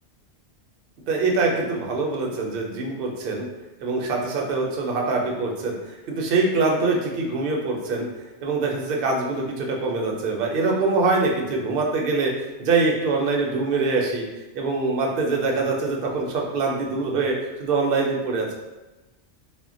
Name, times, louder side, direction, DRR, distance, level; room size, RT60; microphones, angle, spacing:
voice 1, 1.1-3.5 3.8-8.1 8.4-12.3 12.6-14.2 14.5-18.5, right 3 dB, 60° right, -1 dB, 0.7 m, -24 dB
2.1 x 2.1 x 3.6 m, 1.1 s
omnidirectional pair, 1.2 m